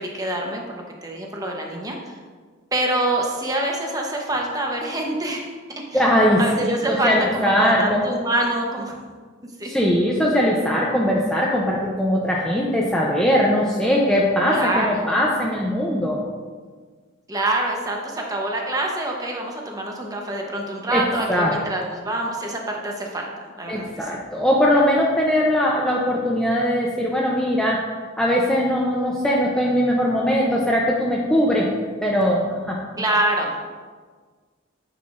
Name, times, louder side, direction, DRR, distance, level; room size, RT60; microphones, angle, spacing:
voice 1, 0.0-2.2 2.7-5.5 5.9-6.0 6.4-8.9 9.4-9.7 14.5-15.2 17.3-24.2 33.0-33.5, right 1 dB, 20° right, 0 dB, 0.9 m, -26 dB
voice 2, 5.9-8.0 9.6-16.2 20.9-21.0 21.3-21.5 23.7-27.8 28.2-31.7 32.0-32.8, equal, 5° left, -4 dB, 0.6 m, -20 dB
9.3 x 5.8 x 2.5 m, 1.5 s
head